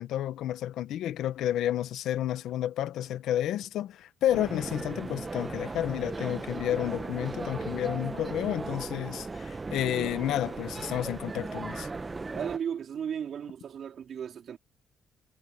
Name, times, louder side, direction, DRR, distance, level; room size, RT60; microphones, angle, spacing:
voice 1, 0.0-11.9, left 12 dB, 80° left, 1.3 m, -31 dB
sound 1, 4.3-12.6, right 3 dB, 25° right, 1.1 m, -37 dB
voice 2, 12.3-14.6, right 8 dB, 60° right, 4.1 m, -35 dB
cardioid pair, 90°, 0 cm